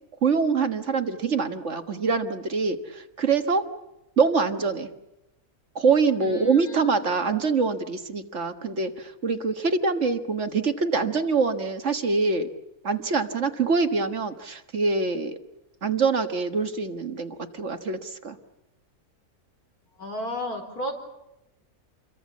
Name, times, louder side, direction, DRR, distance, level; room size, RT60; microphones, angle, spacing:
voice 1, 0.2-3.6 4.2-4.9 5.8-12.5 12.8-15.4 15.8-18.4, right 4 dB, 50° right, 7 dB, 1.8 m, -24 dB
voice 2, 6.2-7.0 20.0-20.9, equal, 85° left, 2 dB, 4.8 m, -33 dB
28.5 x 23.0 x 7.3 m, 0.88 s
omnidirectional pair, 1.6 m